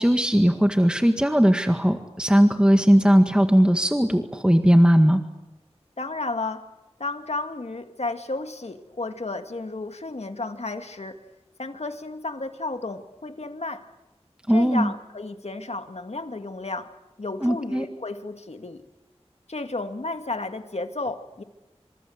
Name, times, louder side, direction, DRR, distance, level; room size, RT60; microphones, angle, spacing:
voice 1, 0.0-5.2 14.5-14.9 17.4-17.9, equal, 10° right, 6 dB, 1.8 m, -18 dB
voice 2, 6.0-6.6 7.0-11.2 11.6-13.8 14.5-16.9 17.2-18.8 19.5-21.4, left 2 dB, 70° left, 7 dB, 2.1 m, -32 dB
26.5 x 26.0 x 7.9 m, 0.97 s
wide cardioid pair, 55°, 11 cm